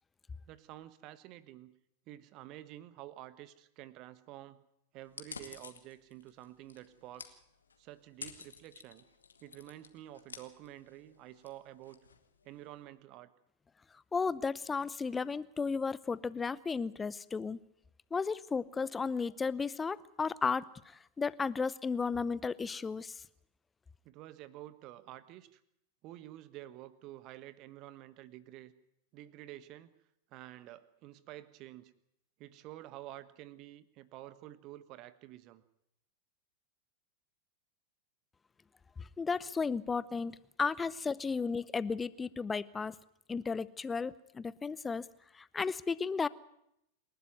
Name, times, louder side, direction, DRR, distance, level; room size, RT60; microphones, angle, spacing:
voice 1, 0.5-1.7 2.1-4.6 4.9-7.4 7.8-9.0 9.4-12.0 12.4-13.3 24.0-25.6 26.0-28.7 29.1-29.9 30.3-31.9 32.4-35.6, right 14 dB, 40° right, 16 dB, 1.3 m, -50 dB
sound 1, 5.0-12.8, left 5 dB, 75° left, 2.0 m, -52 dB
voice 2, 14.1-17.6 18.1-23.2 39.0-42.9 43.3-45.0 45.3-46.3, left 5 dB, 15° left, 20 dB, 0.7 m, -34 dB
27.5 x 12.0 x 9.4 m, 0.79 s
figure-of-eight pair, 90°, 0 cm